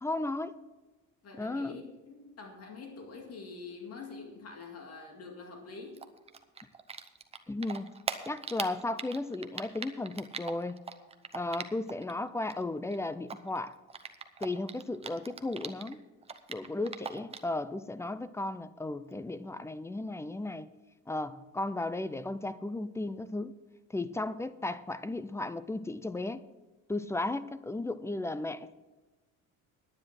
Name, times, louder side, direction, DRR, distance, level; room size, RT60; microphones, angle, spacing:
voice 1, 0.0-0.5 1.4-1.7 7.5-7.9 8.3-10.8 11.3-13.7 14.4-16.0 16.5-20.7 21.1-23.5 23.9-26.4 26.9-28.7, left 2 dB, 10° left, 0.4 m, -35 dB
voice 2, 1.2-6.1 16.6-16.8, left 4 dB, 45° left, 2.2 m, -46 dB
Typing, 5.9-12.1 12.4-15.9 16.2-17.5, right 5 dB, 20° right, 0.7 m, -40 dB
10.0 x 9.8 x 6.0 m
cardioid pair, 140°, 33 cm